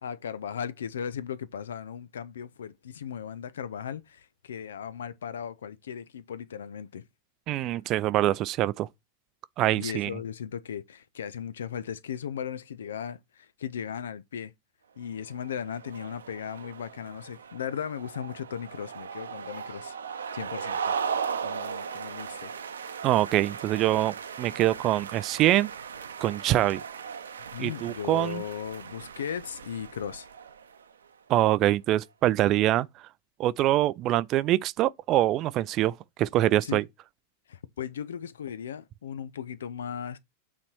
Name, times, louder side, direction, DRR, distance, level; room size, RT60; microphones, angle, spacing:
voice 1, 0.0-7.0 9.7-14.5 15.0-20.0 20.3-20.9 21.4-22.5 27.5-30.3 36.6-36.8 37.5-40.2, left 8 dB, 65° left, 0.5 m, -37 dB
voice 2, 7.5-8.9 9.6-10.1 23.0-25.7 26.2-26.8 27.6-28.4 31.3-32.9 33.4-36.8, right 14 dB, 35° right, 0.4 m, -24 dB
sound 1, 15.3-30.9, right 6 dB, 70° right, 0.7 m, -37 dB
8.5 x 4.2 x 4.6 m
figure-of-eight pair, 90°, 0 cm